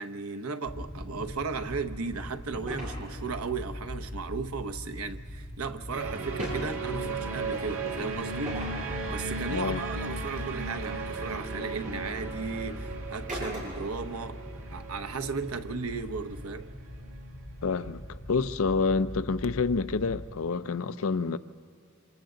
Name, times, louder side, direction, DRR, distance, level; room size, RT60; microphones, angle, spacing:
voice 1, 0.0-8.7 9.1-14.4 14.7-16.7, right 4 dB, 90° right, 1.0 m, -35 dB
sound 1, 0.6-20.2, equal, 25° left, 1.8 m, -41 dB
sound 2, 2.7-3.0 6.2-6.7 7.5-7.7 8.4-8.8 11.1-11.2 11.8-12.0 13.3-14.0, equal, 35° right, 7.4 m, -36 dB
sound 3, 5.9-17.3, right 4 dB, 65° right, 1.9 m, -37 dB
voice 2, 9.5-9.8 17.6-21.4, left 4 dB, 70° left, 0.6 m, -28 dB
27.5 x 26.0 x 3.9 m
head